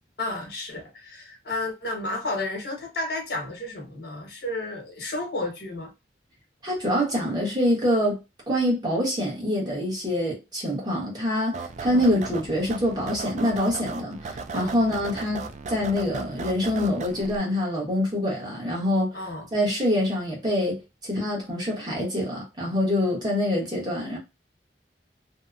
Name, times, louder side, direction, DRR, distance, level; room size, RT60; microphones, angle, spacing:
voice 1, 0.2-5.9 11.8-12.0 14.5-14.8 19.1-19.5, left 2 dB, 65° left, 1.1 m, -32 dB
voice 2, 6.6-8.2 8.5-19.1 19.5-24.2, left 1 dB, 25° right, 1.1 m, -25 dB
sound 1, 11.5-17.4, right 4 dB, 40° right, 0.3 m, -37 dB
2.8 x 2.1 x 2.4 m
head